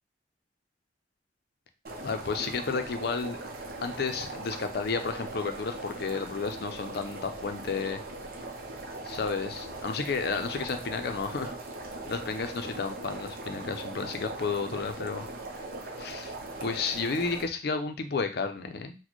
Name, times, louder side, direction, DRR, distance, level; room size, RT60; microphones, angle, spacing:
sound 1, 1.8-17.4, right 2 dB, 55° right, 0.7 m, -40 dB
voice 1, 2.0-3.4 3.8-8.0 9.0-11.5 12.1-15.3 16.0-16.3 16.6-19.0, left 4 dB, 60° left, 7 dB, 0.5 m, -32 dB
4.1 x 2.1 x 3.0 m, 0.31 s
head